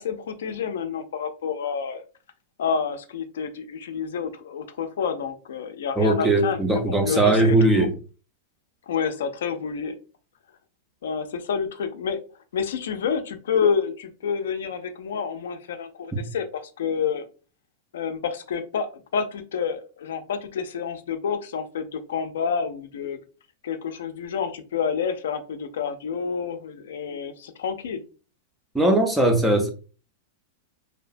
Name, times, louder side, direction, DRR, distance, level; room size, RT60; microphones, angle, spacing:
voice 1, 0.0-2.0 2.6-7.9 8.9-10.0 11.0-12.2 12.5-17.2 17.9-23.2 23.6-28.0, left 6 dB, 85° left, 8 dB, 0.4 m, -29 dB
voice 2, 6.0-8.0 16.1-16.2 28.7-29.7, right 2 dB, 5° right, 4 dB, 0.3 m, -20 dB
2.7 x 2.1 x 2.5 m, 0.35 s
supercardioid pair, 180°, 0 cm